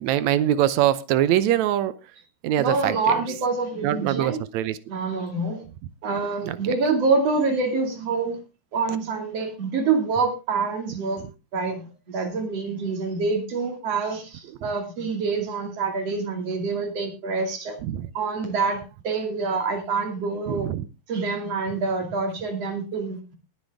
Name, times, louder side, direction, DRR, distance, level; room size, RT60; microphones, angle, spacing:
voice 1, 0.0-1.9 2.4-3.4 3.8-4.8 6.5-6.8 8.9-9.0 14.5-14.6 17.8-18.1 20.5-20.9, right 12 dB, 75° right, 15 dB, 1.8 m, -23 dB
voice 2, 2.6-4.4 4.9-5.6 6.0-8.4 8.7-11.2 11.5-17.8 18.2-20.7 21.1-23.4, right 4 dB, 50° right, 4 dB, 3.3 m, -26 dB
20.5 x 7.7 x 3.5 m, 0.28 s
omnidirectional pair, 3.7 m